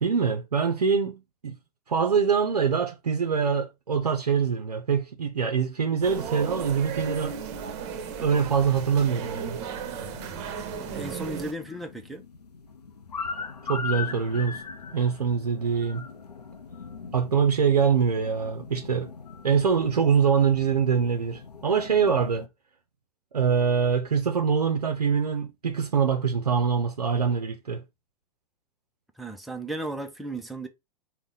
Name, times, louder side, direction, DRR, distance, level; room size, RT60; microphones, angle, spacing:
voice 1, 0.0-1.6 1.9-7.4 8.2-9.6 13.7-14.6 14.9-16.1 17.1-19.1 19.4-22.5 23.3-27.8, right 6 dB, 80° right, 0.5 m, -24 dB
sound 1, 6.0-11.5, right 7 dB, 45° right, 0.7 m, -35 dB
sound 2, 9.8-22.5, left 5 dB, 85° left, 0.5 m, -40 dB
voice 2, 10.8-12.2 29.2-30.7, right 1 dB, ahead, 0.4 m, -35 dB
4.0 x 2.1 x 3.6 m
figure-of-eight pair, 100°, 20 cm